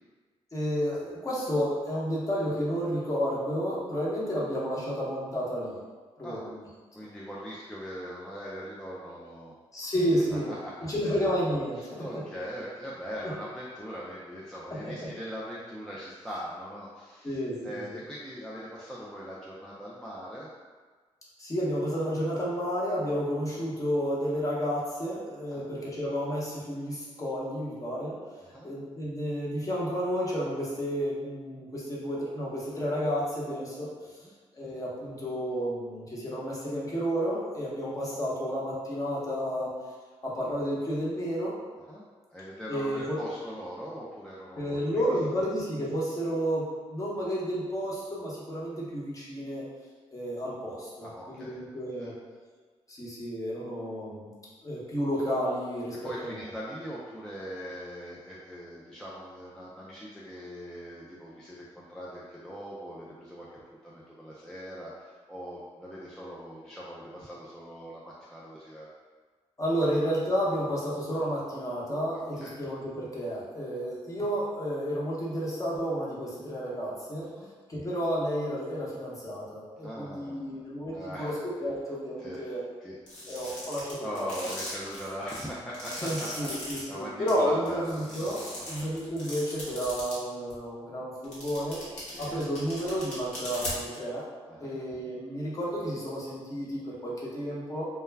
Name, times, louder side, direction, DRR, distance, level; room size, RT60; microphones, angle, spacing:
voice 1, 0.5-5.7 6.2-6.4 9.7-10.5 10.8-12.2 14.8-14.9 17.2-18.0 21.4-28.1 28.6-33.9 34.5-39.7 40.2-41.5 42.7-43.2 44.6-49.6 50.1-52.1 52.9-54.3 54.6-56.0 56.2-56.4 69.6-77.3 77.7-81.3 81.6-82.6 83.3-84.3 86.0-88.4 88.7-91.8 92.2-94.2 94.6-97.9, equal, 25° left, -5 dB, 0.9 m, -31 dB
voice 2, 6.9-9.5 9.8-9.9 10.3-10.7 11.0-11.3 11.8-20.5 25.5-25.6 28.4-28.7 34.2-34.3 41.9-42.0 42.3-45.1 51.0-51.6 52.0-52.1 56.0-68.9 72.1-72.6 77.3-77.5 79.8-80.6 80.9-81.7 82.2-83.0 83.3-83.4 84.0-88.9 92.0-92.4 94.5-94.8, equal, 5° left, -7 dB, 0.4 m, -41 dB
sound 1, 83.1-86.8 87.3-87.4 87.7-90.2 90.5-90.6 91.2-94.0, left 1 dB, 85° left, 1.1 m, -39 dB
2.2 x 2.2 x 3.3 m, 1.4 s
cardioid pair, 80°, 12 cm